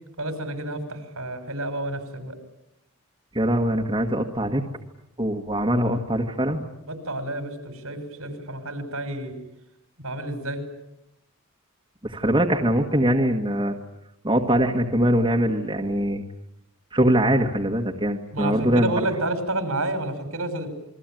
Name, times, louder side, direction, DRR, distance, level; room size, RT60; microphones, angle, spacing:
voice 1, 0.2-2.4 6.9-9.4 10.0-10.6 18.3-20.7, right 1 dB, 70° right, 8 dB, 5.9 m, -30 dB
voice 2, 3.3-4.6 5.2-6.6 12.0-13.7 14.2-16.2 16.9-19.0, right 1 dB, 20° right, 1 dB, 1.7 m, -22 dB
28.5 x 22.5 x 9.2 m, 0.83 s
head